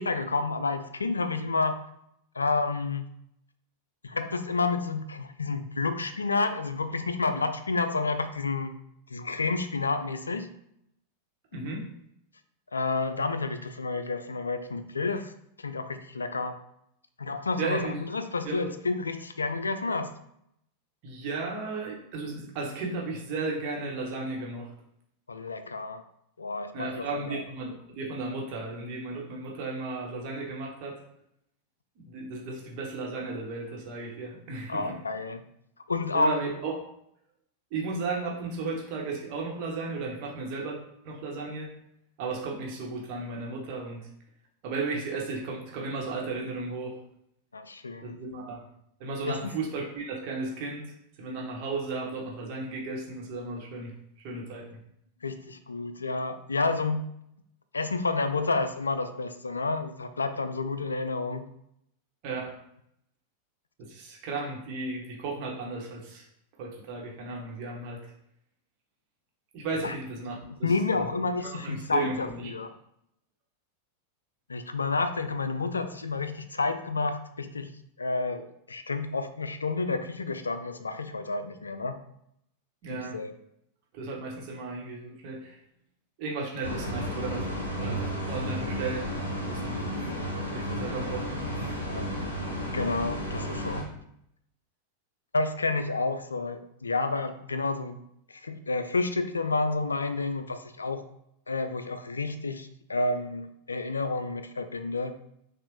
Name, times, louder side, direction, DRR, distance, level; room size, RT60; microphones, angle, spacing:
voice 1, 0.0-1.8 2.4-3.1 4.0-8.7 9.1-10.5 12.7-15.3 15.6-16.6 17.2-17.8 18.1-20.1 25.3-26.0 26.4-27.4 34.7-35.4 35.9-36.4 47.5-48.2 49.3-49.5 55.2-57.1 57.7-61.4 69.8-69.9 70.6-72.7 74.5-77.7 78.0-82.0 82.9-83.3 91.9-92.1 92.7-93.8 95.3-98.0 98.3-101.0 101.5-105.1, left 3 dB, 75° left, 10 dB, 0.3 m, -30 dB
voice 2, 11.5-11.9 17.6-18.0 18.4-18.7 21.0-24.7 26.7-31.0 32.0-34.9 36.1-36.7 37.7-40.8 41.0-41.7 42.2-44.0 44.6-46.9 48.0-48.6 49.0-50.9 51.2-53.9 54.2-54.8 62.2-62.5 63.8-66.2 66.6-68.0 69.5-71.1 71.4-72.5 82.8-83.2 83.9-85.6 86.2-87.5 87.7-91.7, right 3 dB, 45° right, -1 dB, 1.2 m, -35 dB
sound 1, 86.6-93.8, equal, 90° right, 0.8 m, -33 dB
5.9 x 2.4 x 3.1 m, 0.75 s
figure-of-eight pair, 90°, 0 cm